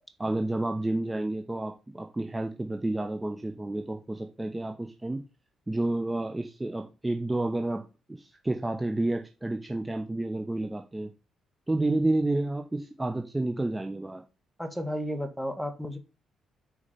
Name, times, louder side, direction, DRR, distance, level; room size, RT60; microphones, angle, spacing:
voice 1, 0.2-5.2 5.7-7.8 8.2-11.1 11.7-14.2, right 2 dB, 15° right, 4 dB, 1.2 m, -30 dB
voice 2, 14.6-16.0, equal, ahead, 8 dB, 1.9 m, -33 dB
8.7 x 4.8 x 5.2 m, 0.30 s
cardioid pair, 90°, 0 cm